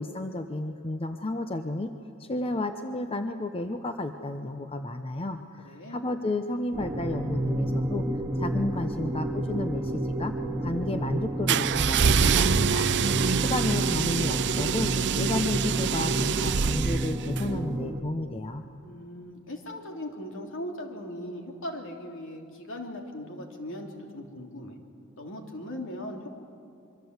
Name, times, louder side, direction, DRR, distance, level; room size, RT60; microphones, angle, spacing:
voice 1, 0.0-1.9 2.2-8.0 8.4-10.3 10.6-12.9 13.4-18.6, left 2 dB, 25° left, 7 dB, 0.8 m, -32 dB
voice 2, 5.3-6.0 18.8-24.8 25.2-26.3, left 1 dB, 65° left, 2 dB, 3.1 m, -39 dB
sound 1, 6.7-18.0, right 1 dB, 10° right, 2.0 m, -30 dB
sound 2, 11.5-17.5, right 6 dB, 55° right, 0.6 m, -25 dB
26.0 x 24.0 x 8.1 m, 2.6 s
head